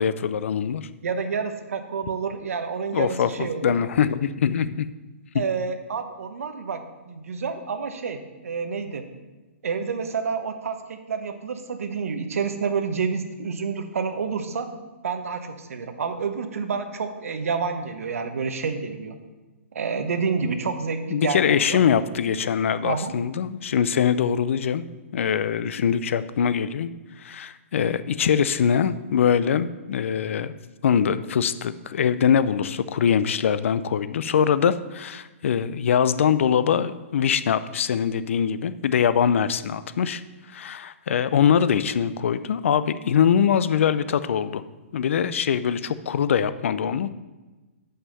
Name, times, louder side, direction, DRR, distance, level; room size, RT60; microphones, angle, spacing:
voice 1, 0.0-0.9 2.9-4.9 5.3-5.4 21.1-24.8 25.1-26.9 27.2-30.5 30.8-40.2 40.5-44.6 44.9-47.1, left 8 dB, 65° left, 14 dB, 0.4 m, -23 dB
voice 2, 1.0-3.7 5.3-9.1 9.6-14.7 15.0-19.1 19.7-21.8 22.8-23.1, right 5 dB, 85° right, 8 dB, 0.9 m, -29 dB
5.6 x 5.6 x 6.6 m, 1.2 s
hypercardioid pair, 165°, 7 cm